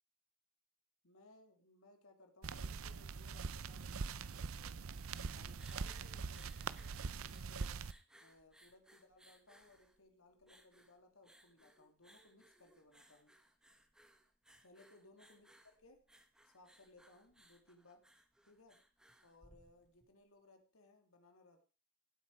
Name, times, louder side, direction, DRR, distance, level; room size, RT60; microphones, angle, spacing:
voice 1, 1.0-4.8 5.2-7.8 8.2-13.3 14.6-16.0 16.4-18.0 18.4-18.8 19.2-21.6, left 2 dB, 85° left, 4 dB, 2.8 m, -64 dB
sound 1, 2.4-7.9, right 5 dB, 80° right, 0.6 m, -43 dB
sound 2, 5.0-20.1, right 1 dB, 5° right, 1.3 m, -66 dB
17.0 x 8.2 x 4.7 m, 0.35 s
head